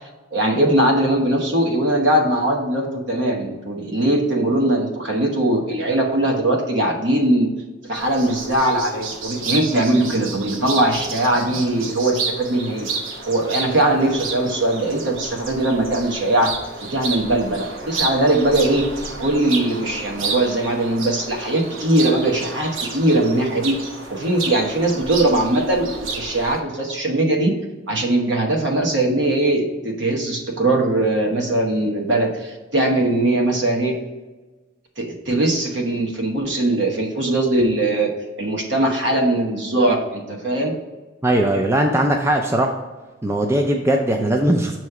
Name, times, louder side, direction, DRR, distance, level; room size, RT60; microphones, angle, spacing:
voice 1, 0.3-7.5 7.9-12.9 13.3-16.5 16.9-18.9 19.2-23.8 24.1-27.5 27.9-34.0 35.0-40.7, right 1 dB, 65° right, 2 dB, 1.1 m, -20 dB
sound 1, 7.9-26.6, right 4 dB, 90° right, 0.9 m, -31 dB
voice 2, 41.2-42.7 43.2-44.8, right 1 dB, 15° right, 2 dB, 0.4 m, -19 dB
6.6 x 3.1 x 4.7 m, 1.2 s
head